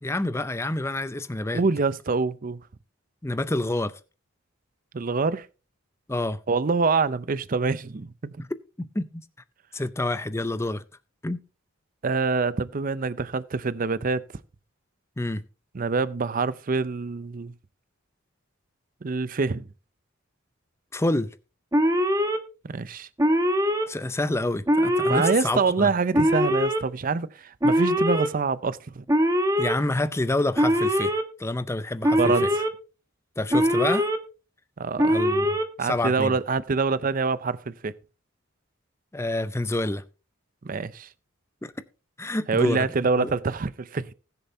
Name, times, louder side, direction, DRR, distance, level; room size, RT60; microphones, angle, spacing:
voice 1, 0.0-1.6 3.2-4.0 6.1-6.4 8.4-8.5 8.8-9.2 9.7-10.8 11.2-11.4 15.2-15.4 20.9-21.3 23.9-25.9 29.6-31.1 31.4-32.5 33.4-34.1 35.1-36.4 39.1-40.0 41.6-41.7 42.2-42.9 43.2-43.3, left 2 dB, 15° left, 0.5 m, -28 dB
voice 2, 1.5-2.6 4.9-5.5 6.5-8.3 12.0-14.2 15.7-17.5 19.0-19.7 22.6-23.1 25.1-29.0 32.2-32.7 34.8-35.1 35.8-37.9 40.6-41.1 42.5-44.1, right 4 dB, 40° right, 0.5 m, -25 dB
Alarm, 21.7-22.4 23.2-23.8 24.7-25.3 26.1-26.8 27.6-28.3 29.1-29.7 30.6-31.2 32.0-32.7 33.5-34.2 35.0-35.6, equal, 15° right, 1.0 m, -22 dB
20.0 x 6.9 x 2.7 m
head